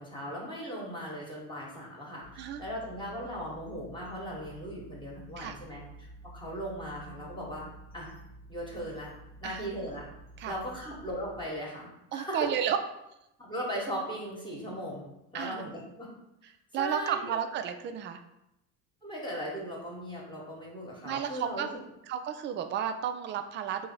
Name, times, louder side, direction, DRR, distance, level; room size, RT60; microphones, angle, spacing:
voice 1, 0.0-8.1 8.5-9.1 9.4-10.0 10.5-12.5 13.4-15.0 15.3-16.1 16.8-17.4 19.0-21.8, equal, 10° left, -4 dB, 1.3 m, -38 dB
sound 1, 2.2-11.5, right 2 dB, 25° left, 0.9 m, -51 dB
voice 2, 12.1-12.8 15.3-15.6 16.7-18.2 21.0-21.7 22.1-23.9, right 9 dB, 25° right, 8 dB, 0.4 m, -32 dB
3.6 x 2.8 x 4.4 m, 0.86 s
hypercardioid pair, 70°, 46 cm